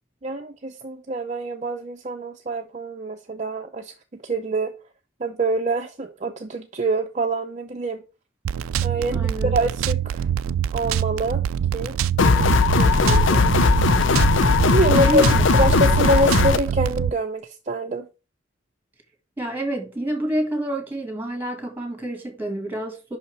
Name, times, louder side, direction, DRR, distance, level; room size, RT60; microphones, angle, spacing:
voice 1, 0.2-3.9 4.2-4.7 5.2-8.0 8.8-10.3 10.7-11.4 11.7-11.9 12.2-13.6 14.6-15.2 15.5-18.1, right 1 dB, 35° right, 0.5 m, -25 dB
sound 1, 8.4-17.1, right 9 dB, 85° right, 0.3 m, -25 dB
voice 2, 9.1-9.6 14.9-15.4 19.4-23.2, right 1 dB, 10° right, 1.7 m, -28 dB
sound 2, 12.2-16.6, left 4 dB, 65° left, 0.5 m, -18 dB
5.7 x 5.7 x 4.6 m
head